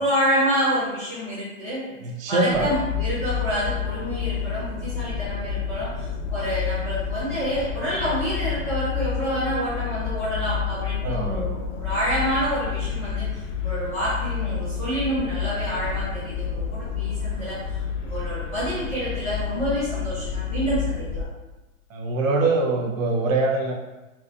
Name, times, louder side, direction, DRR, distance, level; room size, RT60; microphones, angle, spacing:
voice 1, 0.0-1.8 2.3-13.2 13.6-17.6 18.0-21.2, equal, 10° left, -13 dB, 0.6 m, -27 dB
voice 2, 2.0-2.7 11.0-11.5 21.9-23.7, right 3 dB, 70° right, 1 dB, 0.8 m, -23 dB
sound 1, 2.5-21.2, left 7 dB, 60° left, 0.6 m, -29 dB
4.0 x 2.6 x 2.5 m, 1.0 s
hypercardioid pair, 175°, 42 cm